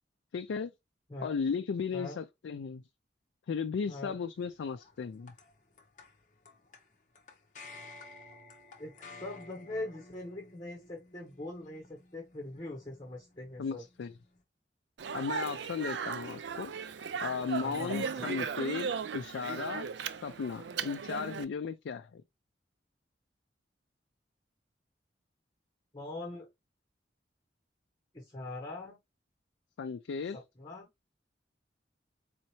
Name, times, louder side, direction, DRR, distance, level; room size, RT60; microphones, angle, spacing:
voice 1, 0.3-0.7 1.2-2.8 3.5-5.3 13.6-14.2 15.1-16.7 17.2-19.9 20.2-22.2 29.8-30.4, left 5 dB, 90° left, 0.4 m, -35 dB
sound 1, 4.4-14.4, left 3 dB, 45° left, 0.8 m, -54 dB
voice 2, 8.8-13.8 17.6-18.0 25.9-26.5 28.1-29.0 30.3-30.9, left 2 dB, 25° left, 1.3 m, -42 dB
Speech, 15.0-21.4, right 6 dB, 75° right, 0.4 m, -37 dB
4.2 x 2.7 x 2.9 m
head